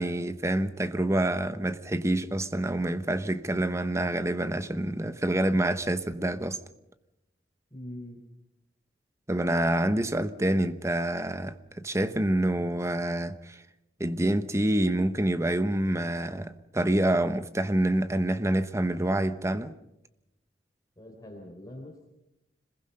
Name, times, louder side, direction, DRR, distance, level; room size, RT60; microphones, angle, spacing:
voice 1, 0.0-6.6 9.3-13.6 14.0-19.7, right 1 dB, 15° right, 1.0 m, -27 dB
voice 2, 7.7-8.2 21.0-22.1, left 1 dB, 20° left, 3.8 m, -43 dB
26.5 x 21.0 x 5.6 m
head